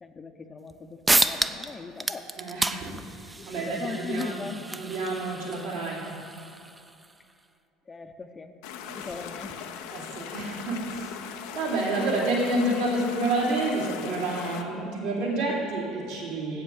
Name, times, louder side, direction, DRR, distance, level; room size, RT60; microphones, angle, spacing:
voice 1, 0.0-2.3 3.4-4.7 7.9-8.5 8.9-9.7 14.4-15.0, left 4 dB, 25° left, 7 dB, 0.7 m, -39 dB
sound 1, 0.7-0.8 1.1-1.7 2.0-7.1, right 2 dB, 15° right, 0.5 m, -30 dB
voice 2, 2.4-4.4 4.7-6.1 8.8-9.0 9.9-11.3 11.5-16.6, right 2 dB, 75° right, -6 dB, 2.8 m, -29 dB
sound 2, 8.6-14.6, left 8 dB, 70° left, 0.6 m, -39 dB
7.9 x 7.9 x 6.5 m, 2.6 s
hypercardioid pair, 65°, 0 cm